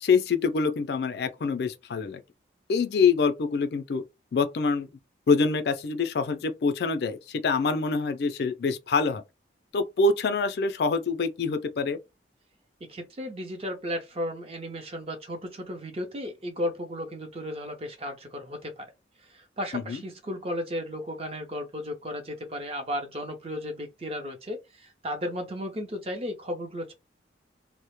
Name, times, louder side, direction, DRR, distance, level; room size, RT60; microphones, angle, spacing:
voice 1, 0.0-2.2 2.7-4.0 4.3-4.9 5.3-9.2 9.7-12.0 19.7-20.0, left 4 dB, 60° left, 0.4 m, -25 dB
voice 2, 12.9-18.9 19.3-26.9, equal, 35° right, 0.6 m, -34 dB
2.0 x 2.0 x 3.0 m
head